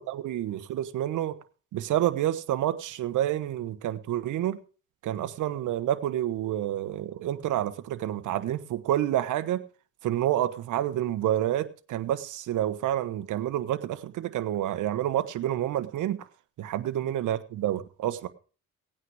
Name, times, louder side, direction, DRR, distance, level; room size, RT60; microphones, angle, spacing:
voice 1, 0.0-1.4 1.7-4.6 5.0-9.6 10.0-16.3 16.6-18.3, right 12 dB, 80° right, 1.2 m, -29 dB
18.0 x 9.1 x 4.8 m
cardioid pair, 90°, 30 cm